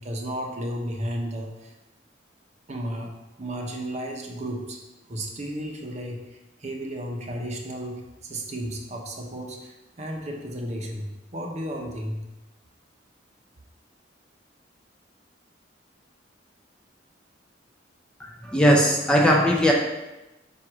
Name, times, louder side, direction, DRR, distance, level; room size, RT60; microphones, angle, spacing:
voice 1, 0.0-1.7 2.7-3.1 3.4-4.8 5.1-11.1 11.3-12.3, right 1 dB, 40° right, 1 dB, 0.9 m, -33 dB
voice 2, 18.2-19.7, equal, 5° left, -1 dB, 0.6 m, -19 dB
7.7 x 2.7 x 5.9 m, 1.0 s
head